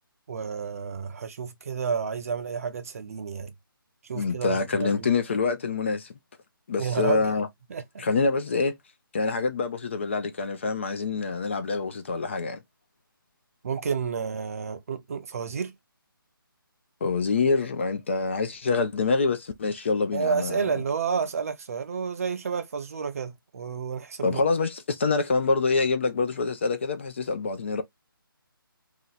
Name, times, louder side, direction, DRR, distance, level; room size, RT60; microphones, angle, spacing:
voice 1, 0.3-3.5 4.1-5.1 6.8-7.3 7.7-8.0 13.6-15.7 20.1-24.4, right 6 dB, 40° right, 0.5 m, -30 dB
voice 2, 4.1-6.1 6.7-7.5 8.0-8.8 9.1-12.6 17.0-20.7 24.2-27.8, left 4 dB, 30° left, 0.4 m, -26 dB
2.8 x 2.1 x 3.7 m
hypercardioid pair, 160°, 12 cm